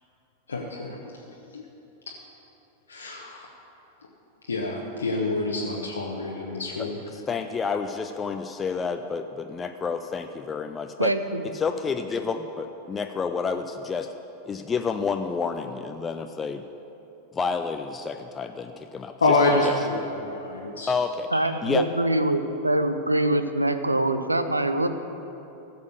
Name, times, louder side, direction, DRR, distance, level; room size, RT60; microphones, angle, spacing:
voice 1, 0.5-1.2 1.5-1.6 2.9-3.5 4.5-7.0 19.2-20.9, left 2 dB, 70° left, -2 dB, 1.0 m, -26 dB
voice 2, 7.1-11.1 11.5-14.1 14.5-16.6 17.3-19.4 19.6-19.8 20.9-21.3 21.6-21.9, left 5 dB, 20° left, 7 dB, 0.5 m, -29 dB
voice 3, 11.0-11.4 21.3-24.9, right 1 dB, 85° right, 10 dB, 0.6 m, -24 dB
15.5 x 6.8 x 6.5 m, 3.0 s
figure-of-eight pair, 90°, 0 cm